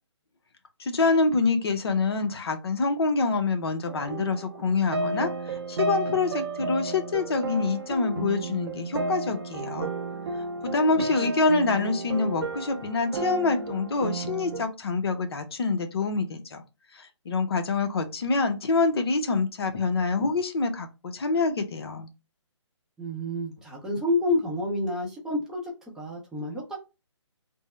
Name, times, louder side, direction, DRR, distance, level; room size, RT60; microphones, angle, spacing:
voice 1, 0.8-9.9 10.6-16.6 16.9-22.1, left 3 dB, 55° left, 7 dB, 0.7 m, -26 dB
sound 1, 3.9-14.7, right 2 dB, 50° right, 0.7 m, -32 dB
voice 2, 23.0-26.8, left 1 dB, 5° right, -4 dB, 0.6 m, -29 dB
3.5 x 2.0 x 4.2 m, 0.27 s
figure-of-eight pair, 140°, 16 cm